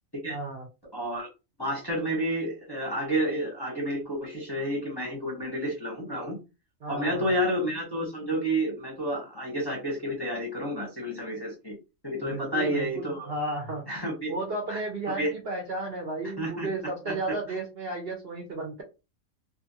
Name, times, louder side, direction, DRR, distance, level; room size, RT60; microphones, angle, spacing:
voice 1, 0.3-0.7 6.8-7.4 12.2-13.8 14.3-18.8, right 2 dB, 55° right, 2 dB, 0.8 m, -33 dB
voice 2, 0.9-1.3 1.6-6.4 6.9-11.8 12.0-13.3 13.9-14.3 14.7-14.8 15.2-15.3 16.4-16.7 17.1-17.4, equal, 20° left, -3 dB, 0.7 m, -30 dB
2.6 x 2.6 x 2.6 m, 0.28 s
omnidirectional pair, 1.4 m